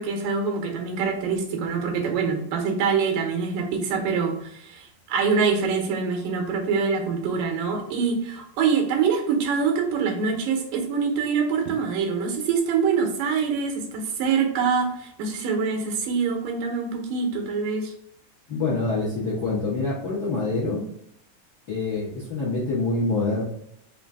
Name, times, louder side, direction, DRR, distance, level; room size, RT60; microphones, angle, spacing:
voice 1, 0.0-17.9, right 5 dB, 85° right, 2 dB, 2.5 m, -25 dB
voice 2, 18.5-20.8 21.7-23.4, left 3 dB, 65° left, -6 dB, 0.9 m, -26 dB
5.4 x 2.6 x 3.5 m, 0.72 s
omnidirectional pair, 3.8 m